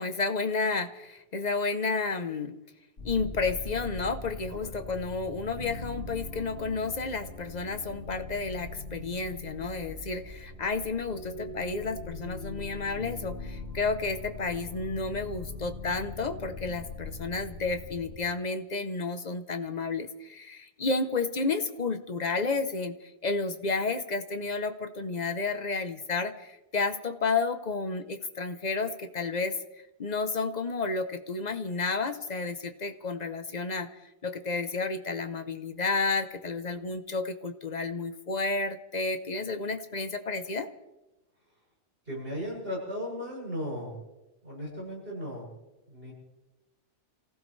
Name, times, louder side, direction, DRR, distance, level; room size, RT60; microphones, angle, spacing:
voice 1, 0.0-2.5 3.0-29.5 30.0-33.9 34.2-40.7, left 4 dB, 40° left, 9 dB, 1.0 m, -31 dB
sound 1, 3.0-18.2, left 3 dB, 80° left, 3.0 m, -41 dB
voice 2, 17.1-17.4 42.1-44.0 44.4-45.5 45.9-46.1, equal, 50° right, -4 dB, 8.1 m, -36 dB
28.0 x 15.5 x 3.3 m, 1.0 s
omnidirectional pair, 1.3 m